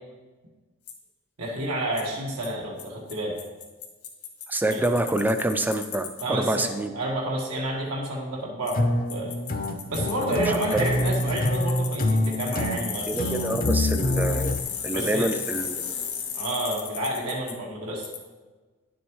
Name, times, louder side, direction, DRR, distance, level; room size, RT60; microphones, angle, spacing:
Bicycle, 0.9-1.0 2.0-2.1 2.4-2.5 2.8-2.9 3.1-3.2 3.4-6.2 6.6-6.7 8.7-8.8 9.1-17.5 18.0-18.2, left 7 dB, 85° left, 1.5 m, -35 dB
voice 1, 1.4-3.4 4.7-4.8 6.2-9.3 9.9-13.3 14.9-15.3 16.3-18.1, right 1 dB, 85° right, -2 dB, 1.4 m, -30 dB
voice 2, 4.5-6.9 10.4-11.1 13.1-14.5 14.8-15.8, right 1 dB, 10° right, 8 dB, 0.3 m, -27 dB
sound 1, 8.7-14.6, left 1 dB, 40° left, 0.6 m, -26 dB
10.5 x 7.1 x 3.1 m, 1.3 s
head